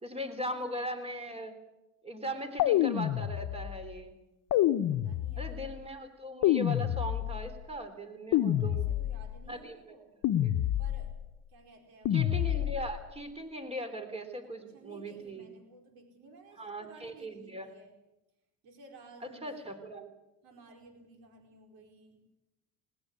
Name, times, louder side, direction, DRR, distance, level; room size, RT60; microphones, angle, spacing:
voice 1, 0.0-1.5 2.0-4.1 5.4-8.9 9.5-9.8 10.4-10.5 12.1-15.5 16.6-17.7 19.4-20.1, equal, 15° right, 8 dB, 3.6 m, -39 dB
sound 1, 2.6-3.8 4.5-5.7 6.4-7.6 8.3-9.4 10.2-11.2 12.1-13.0, left 12 dB, 60° left, 1.0 m, -28 dB
voice 2, 4.9-5.8 8.6-10.1 10.8-11.1 11.5-12.6 14.4-17.9 18.6-19.9 20.4-22.3, right 3 dB, 80° right, 4 dB, 4.7 m, -56 dB
20.0 x 19.5 x 8.3 m, 0.94 s
cardioid pair, 105°, 36 cm